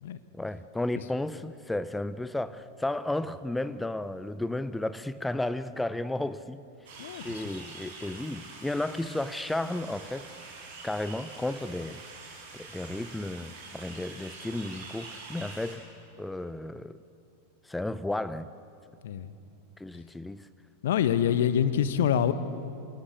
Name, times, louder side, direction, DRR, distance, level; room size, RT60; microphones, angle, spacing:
voice 1, 0.3-6.6 7.2-10.3 10.8-12.0 12.5-15.8 16.2-17.0 17.6-18.5 19.8-20.5, left 1 dB, 5° left, 14 dB, 0.6 m, -33 dB
sound 1, 6.8-15.7, right 4 dB, 55° right, 7.1 m, -45 dB
voice 2, 7.0-7.4 19.0-19.3 20.8-22.3, left 9 dB, 60° left, 13 dB, 1.1 m, -25 dB
26.5 x 17.5 x 8.3 m, 2.6 s
figure-of-eight pair, 90°, 0 cm